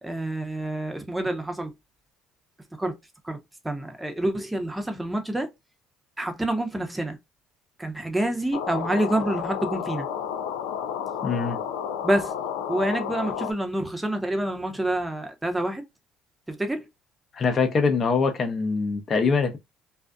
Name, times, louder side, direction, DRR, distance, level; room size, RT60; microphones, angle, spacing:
voice 1, 0.0-1.7 2.7-2.9 3.2-3.4 3.6-5.5 6.2-7.2 7.8-10.1 12.0-12.4 12.7-15.8 16.5-16.9, right 1 dB, 10° right, 0.7 m, -27 dB
sound 1, 8.5-13.5, left 8 dB, 90° left, 0.3 m, -31 dB
voice 2, 11.2-11.6 17.3-19.6, left 4 dB, 40° left, 0.6 m, -23 dB
2.5 x 2.3 x 2.3 m
supercardioid pair, 80°, 0 cm